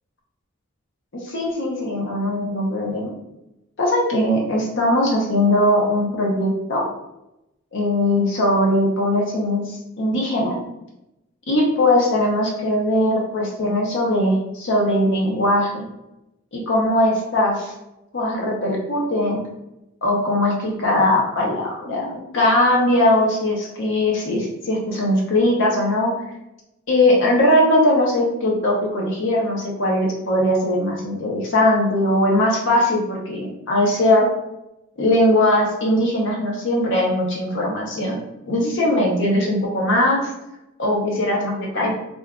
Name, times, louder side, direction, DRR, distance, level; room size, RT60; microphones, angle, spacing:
voice 1, 1.1-3.1 3.8-6.8 7.7-10.6 11.5-15.8 16.5-17.7 18.1-19.4 20.0-22.0 22.3-26.1 26.9-34.3 35.0-38.2 38.5-40.3 40.8-42.0, left 1 dB, 60° left, -2 dB, 0.7 m, -20 dB
2.5 x 2.3 x 3.5 m, 0.88 s
head